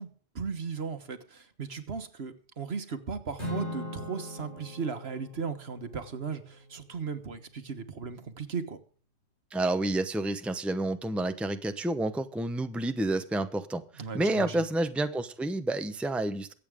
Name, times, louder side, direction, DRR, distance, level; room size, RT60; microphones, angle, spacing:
voice 1, 0.0-8.8 14.0-14.6, right 5 dB, 65° right, 9 dB, 1.6 m, -37 dB
Acoustic guitar / Strum, 3.4-7.8, left 1 dB, 85° left, 5.8 m, -41 dB
voice 2, 9.5-16.5, right 2 dB, ahead, 9 dB, 0.8 m, -29 dB
23.0 x 8.5 x 3.6 m, 0.42 s
omnidirectional pair, 1.1 m